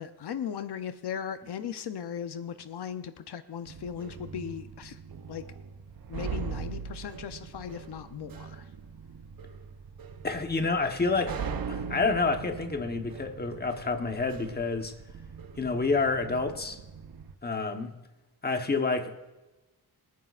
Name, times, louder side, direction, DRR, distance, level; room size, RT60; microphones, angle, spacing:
voice 1, 0.0-5.0 5.3-5.4 6.1-8.7, left 8 dB, 75° left, 9 dB, 0.7 m, -37 dB
sound 1, 3.6-17.3, right 6 dB, 60° right, 0.8 m, -41 dB
voice 2, 10.2-11.4 11.7-14.9 15.6-16.8 17.4-17.9 18.4-19.3, left 4 dB, 25° left, 5 dB, 1.1 m, -28 dB
25.5 x 9.4 x 2.5 m, 1.1 s
wide cardioid pair, 140°, 40 cm